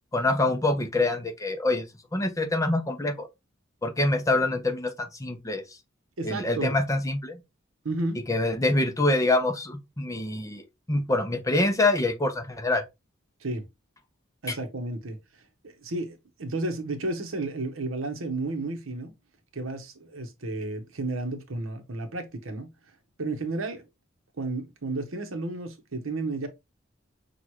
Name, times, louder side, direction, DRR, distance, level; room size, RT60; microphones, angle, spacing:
voice 1, 0.1-1.8 2.1-3.3 3.8-5.6 6.2-7.4 8.3-12.8 14.5-14.6, left 2 dB, 15° left, 0.7 m, -25 dB
voice 2, 6.2-6.8 7.8-8.2 13.4-13.7 14.4-15.2 15.6-19.1 19.5-22.7 23.2-23.9 24.4-26.5, right 2 dB, 90° right, 1.0 m, -32 dB
6.0 x 2.4 x 3.0 m
head